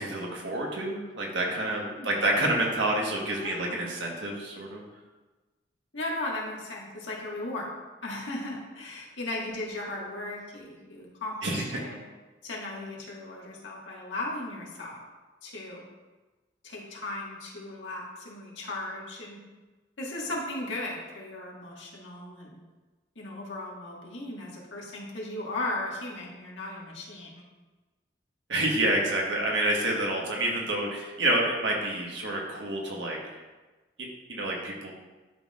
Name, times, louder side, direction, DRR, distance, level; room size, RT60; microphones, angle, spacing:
voice 1, 0.0-4.8 11.4-11.6 28.5-33.4 34.0-34.9, right 1 dB, 75° right, -1 dB, 1.4 m, -28 dB
voice 2, 1.6-2.1 3.3-3.9 5.9-7.7 8.0-12.0 12.4-15.0 15.4-15.8 16.6-19.4 20.0-22.5 23.2-27.3, left 2 dB, 85° left, -4 dB, 1.7 m, -36 dB
11.0 x 4.2 x 2.4 m, 1.2 s
head